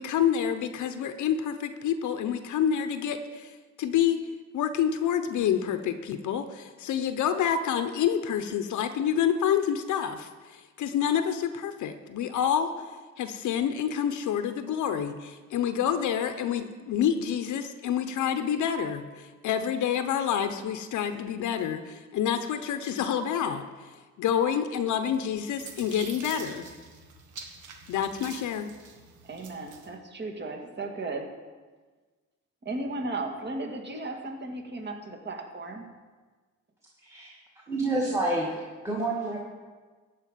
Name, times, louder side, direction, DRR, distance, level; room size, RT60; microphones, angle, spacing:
voice 1, 0.0-4.2 4.5-12.7 13.2-23.9 24.2-26.7 27.9-28.7, left 8 dB, 75° left, 9 dB, 0.8 m, -28 dB
sound 1, 25.2-29.9, right 5 dB, 75° right, 1.7 m, -46 dB
voice 2, 29.2-31.3 32.6-35.8, right 2 dB, 35° right, 3 dB, 1.9 m, -35 dB
voice 3, 37.7-38.6 38.8-39.4, right 2 dB, 10° right, -2 dB, 2.0 m, -28 dB
14.0 x 5.1 x 9.1 m, 1.4 s
cardioid pair, 90°, 30 cm